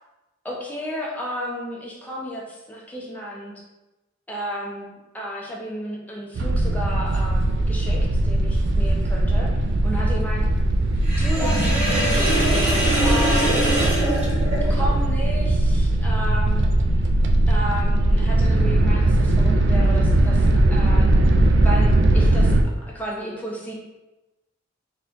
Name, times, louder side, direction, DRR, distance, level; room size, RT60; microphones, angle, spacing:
voice 1, 0.4-3.5 4.3-9.5 9.8-10.4 11.2-12.5 13.0-13.9 14.8-16.7 17.5-21.1 21.6-23.7, equal, 10° left, -4 dB, 0.8 m, -32 dB
sound 1, 6.4-22.6, right 1 dB, 60° right, 0.4 m, -19 dB
Sink (filling or washing), 11.0-15.0, right 1 dB, 30° right, 1.1 m, -23 dB
4.1 x 2.3 x 3.9 m, 1.0 s
head